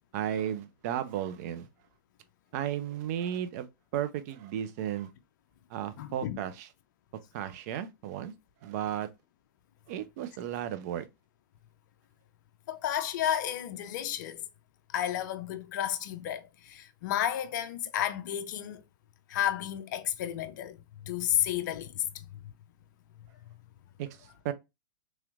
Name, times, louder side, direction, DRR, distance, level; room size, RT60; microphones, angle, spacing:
voice 1, 0.1-1.7 2.5-3.7 3.9-5.1 5.7-6.7 7.3-8.3 8.6-9.1 9.9-11.1 24.0-24.5, right 10 dB, 50° right, 0.5 m, -34 dB
voice 2, 6.0-6.4 12.7-14.4 14.9-18.8 19.3-20.8 21.0-22.3, left 11 dB, 55° left, 0.4 m, -32 dB
3.1 x 2.9 x 2.4 m
hypercardioid pair, 115°, 11 cm